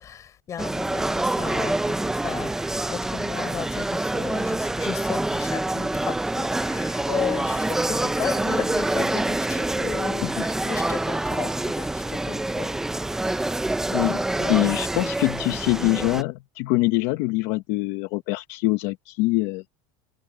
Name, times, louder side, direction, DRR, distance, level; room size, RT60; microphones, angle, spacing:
voice 1, 0.0-15.0, left 9 dB, 25° left, 5.1 m, -35 dB
sound 1, 0.6-16.2, right 2 dB, 5° right, 0.5 m, -26 dB
voice 2, 14.5-19.6, left 20 dB, 55° left, 1.0 m, -24 dB
cardioid pair, 180°, 13 cm